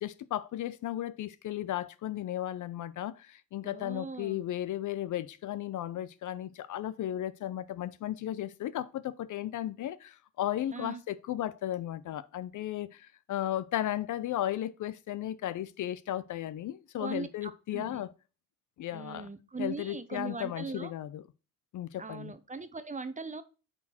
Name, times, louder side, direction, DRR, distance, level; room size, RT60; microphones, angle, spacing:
voice 1, 0.0-18.1 18.8-19.3 19.6-21.2 21.7-22.3, left 12 dB, 55° left, 0.6 m, -35 dB
voice 2, 3.6-4.4 10.7-11.0 17.0-18.0 18.9-20.9 22.0-23.4, right 4 dB, 20° right, 1.0 m, -40 dB
8.3 x 4.3 x 4.2 m
cardioid pair, 90°, 37 cm